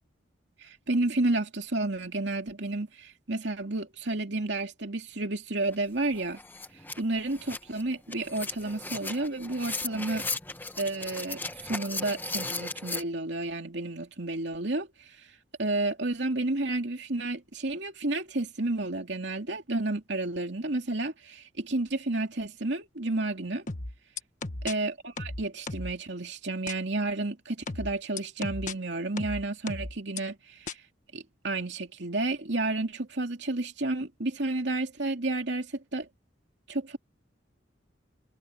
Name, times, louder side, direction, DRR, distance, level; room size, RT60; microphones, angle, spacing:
voice 1, 0.6-6.4 7.0-10.2 10.8-14.9 15.6-23.6 24.6-30.8 31.1-36.1 36.7-37.0, right 2 dB, 70° right, 2.8 m, -31 dB
sound 1, 5.7-5.8 6.1-13.0, left 3 dB, 10° left, 1.4 m, -37 dB
sound 2, 23.7-24.7 25.2-26.0 26.7-26.8 27.7-28.7 29.2-30.2 30.7-30.8, left 3 dB, 45° left, 1.4 m, -35 dB
head